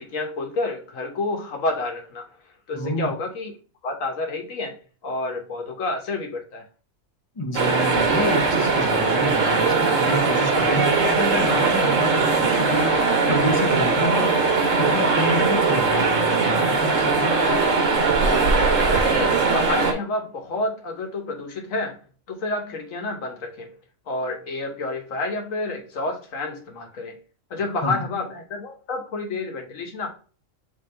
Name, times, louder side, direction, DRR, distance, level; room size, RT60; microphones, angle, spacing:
voice 1, 0.0-2.3 2.7-3.5 3.8-4.8 5.0-6.6 18.8-22.0 22.3-23.7 24.1-27.2 27.5-30.1, left 2 dB, 80° left, 1.3 m, -29 dB
voice 2, 2.7-3.1 7.4-13.0 13.3-14.4 14.7-17.3 27.8-28.1, left 1 dB, 35° left, 0.5 m, -28 dB
sound 1, 7.5-19.9, right 4 dB, 70° right, 1.2 m, -20 dB
3.6 x 3.0 x 4.2 m
omnidirectional pair, 1.4 m